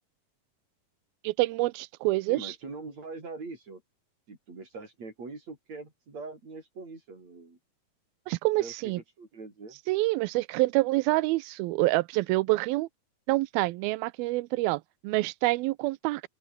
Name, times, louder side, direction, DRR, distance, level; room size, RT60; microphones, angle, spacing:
voice 1, 1.2-2.5 8.3-9.0 9.9-12.9 13.3-16.2, right 20 dB, 90° right, 2.5 m, -27 dB
voice 2, 2.3-3.8 4.3-7.6 8.6-9.8, right 3 dB, 45° right, 8.3 m, -42 dB
open air
omnidirectional pair, 4.2 m